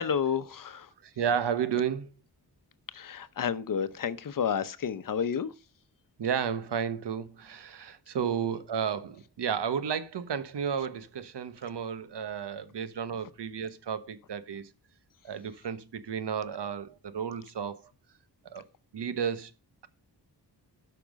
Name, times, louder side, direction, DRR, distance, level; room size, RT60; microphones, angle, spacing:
voice 1, 0.0-0.9 2.9-5.5 8.2-8.3, left 7 dB, 50° left, 0.8 m, -30 dB
voice 2, 1.0-2.1 6.2-14.7 15.2-17.8 18.4-18.6 18.9-19.5, right 7 dB, 80° right, 1.1 m, -32 dB
12.0 x 6.0 x 5.1 m
wide cardioid pair, 180°, 41 cm